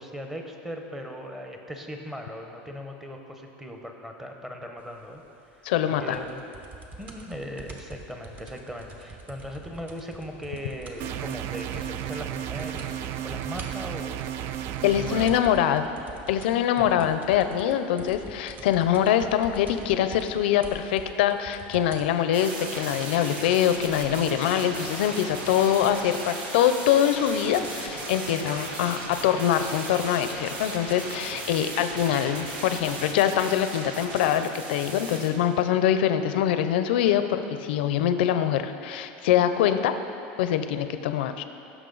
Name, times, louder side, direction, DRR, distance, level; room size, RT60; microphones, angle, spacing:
voice 1, 0.0-5.2 5.5-5.7 6.0-6.4 7.0-15.3 16.8-16.9, equal, 5° right, 3 dB, 0.8 m, -39 dB
voice 2, 5.6-6.2 14.8-15.8 16.3-39.9 40.4-41.4, left 10 dB, 80° left, 9 dB, 0.5 m, -24 dB
sound 1, 6.1-11.2 11.4-11.5 11.7-12.2 12.5-12.9 13.3-22.1 22.9-23.0, right 3 dB, 30° right, 0.9 m, -45 dB
sound 2, 11.0-15.4, right 11 dB, 45° right, 0.3 m, -33 dB
sound 3, 22.3-35.3, right 2 dB, 90° right, 1.4 m, -36 dB
15.5 x 6.2 x 3.9 m, 2.8 s
supercardioid pair, 145°, 5 cm